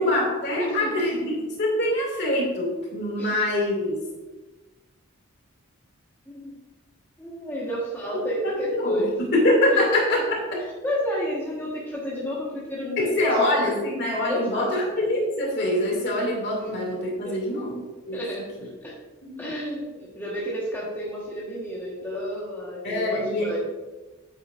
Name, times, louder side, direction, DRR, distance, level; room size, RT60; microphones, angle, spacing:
voice 1, 0.0-4.0 8.1-10.6 13.0-18.2 19.2-19.4 22.8-23.5, left 1 dB, 50° left, -1 dB, 2.6 m, -24 dB
voice 2, 0.5-1.1 3.2-3.3 6.3-6.6 7.2-9.1 9.7-9.8 10.8-13.8 14.2-14.7 17.2-17.3 18.1-18.9 19.4-23.6, equal, 10° left, -6 dB, 1.5 m, -31 dB
8.9 x 8.8 x 2.6 m, 1.2 s
head